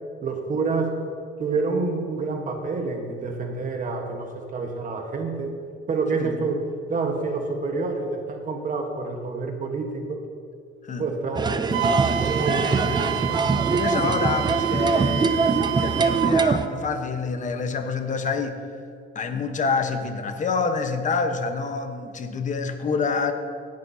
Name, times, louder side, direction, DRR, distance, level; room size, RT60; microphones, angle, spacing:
voice 1, 0.2-1.0 1.4-5.6 5.9-10.3 11.0-11.8 12.2-13.2 14.0-14.1, right 3 dB, 40° right, 3 dB, 1.3 m, -28 dB
sound 1, 11.3-16.7, right 4 dB, 20° right, 0.5 m, -23 dB
Wind instrument woodwind instrument, 11.7-16.4, right 11 dB, 85° right, 0.6 m, -29 dB
voice 2, 12.7-13.2 13.7-18.6 19.1-23.3, left 5 dB, 40° left, 7 dB, 1.1 m, -27 dB
17.0 x 10.5 x 2.8 m, 2.3 s
cardioid pair, 110°, 20 cm